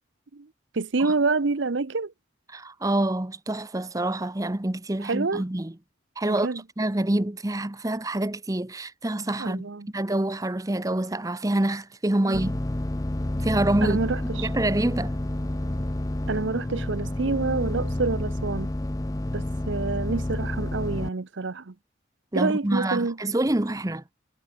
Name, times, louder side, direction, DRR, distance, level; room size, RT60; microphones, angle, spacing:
voice 1, 0.7-2.1 5.1-5.4 6.3-6.6 9.4-9.9 12.2-12.4 13.8-14.5 16.3-18.7 19.3-21.7 22.3-23.2, right 3 dB, 70° right, 0.8 m, -27 dB
voice 2, 2.5-5.7 6.2-6.5 6.8-12.6 13.4-14.0 14.3-15.2 22.3-24.1, right 1 dB, 15° right, 0.7 m, -26 dB
sound 1, 12.3-21.1, left 1 dB, 20° left, 0.6 m, -29 dB
head